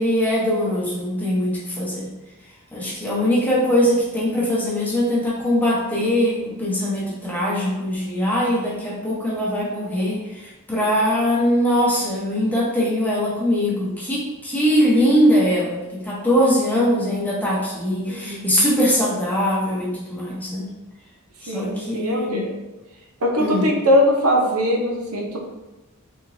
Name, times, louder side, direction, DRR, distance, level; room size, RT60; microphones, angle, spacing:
voice 1, 0.0-2.1 2.7-20.7 21.4-22.4 23.4-23.7, equal, 10° left, -7 dB, 0.9 m, -21 dB
voice 2, 16.8-17.1 18.1-18.5 21.5-22.5 23.2-25.4, equal, 85° right, 0 dB, 0.7 m, -21 dB
3.7 x 3.0 x 2.7 m, 1.1 s
head